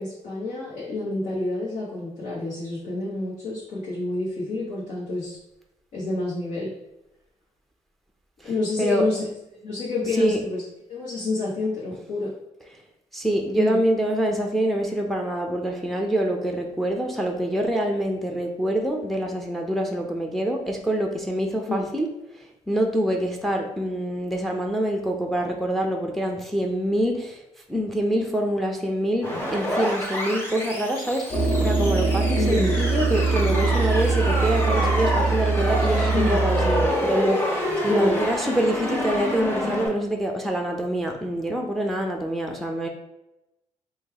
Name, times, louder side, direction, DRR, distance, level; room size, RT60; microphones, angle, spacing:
voice 1, 0.0-5.4 5.9-6.7 8.4-9.2 9.6-10.6 10.9-12.3 13.5-13.8 21.7-21.9 32.4-32.8 36.1-36.4 37.8-38.2, left 2 dB, 70° left, -7 dB, 1.0 m, -28 dB
voice 2, 13.1-22.1 22.4-27.4 27.7-42.9, right 1 dB, ahead, 2 dB, 0.5 m, -25 dB
sound 1, 29.2-39.9, equal, 20° left, 1.4 m, -28 dB
sound 2, 31.3-36.9, right 4 dB, 35° left, 0.9 m, -23 dB
3.1 x 2.3 x 3.4 m, 0.90 s
supercardioid pair, 65°, 13 cm